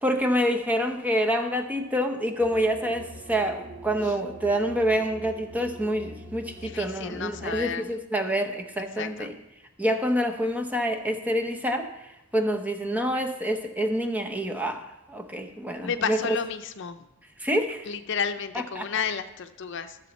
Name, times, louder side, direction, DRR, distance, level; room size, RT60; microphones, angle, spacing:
voice 1, 0.0-9.3 9.8-16.4 17.4-17.9 18.8-18.9, equal, 10° right, 4 dB, 0.8 m, -27 dB
sound 1, 2.4-7.7, equal, 50° right, 1.1 m, -44 dB
voice 2, 6.6-7.9 9.0-9.3 15.8-17.0 17.9-20.0, left 6 dB, 65° left, 9 dB, 0.6 m, -32 dB
13.5 x 7.0 x 4.1 m, 0.96 s
head